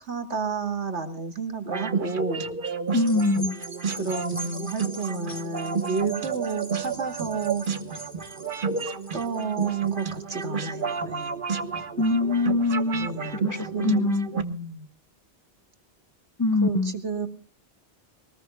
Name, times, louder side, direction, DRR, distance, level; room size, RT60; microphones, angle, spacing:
voice 1, 0.1-2.4 3.9-7.7 9.1-11.4 13.0-13.5 13.7-14.9 16.6-17.3, right 4 dB, 80° right, 2.6 m, -31 dB
sound 1, 1.7-14.4, right 5 dB, 50° right, 1.3 m, -31 dB
voice 2, 2.9-3.6 12.0-14.3 16.4-16.9, left 2 dB, 20° left, 0.7 m, -24 dB
sound 2, 2.9-11.5 12.0-12.1, right 1 dB, 10° right, 4.1 m, -43 dB
24.0 x 19.5 x 2.2 m
omnidirectional pair, 1.2 m